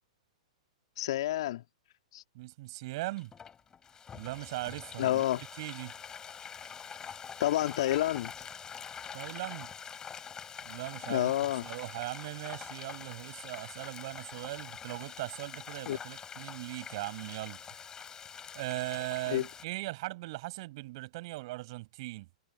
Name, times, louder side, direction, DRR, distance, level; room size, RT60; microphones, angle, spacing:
voice 1, 1.0-1.6 2.1-2.2 5.0-5.5 7.4-8.3 11.1-11.6 15.9-16.0 19.3-19.5, left 14 dB, 55° left, 2.5 m, -29 dB
voice 2, 2.3-3.3 4.1-5.9 9.1-9.7 10.6-11.4 11.6-17.7 18.5-22.3, right 20 dB, 45° right, 7.6 m, -39 dB
Frying (food), 3.0-19.6, left 7 dB, 15° left, 7.6 m, -45 dB
figure-of-eight pair, 110°, 4 cm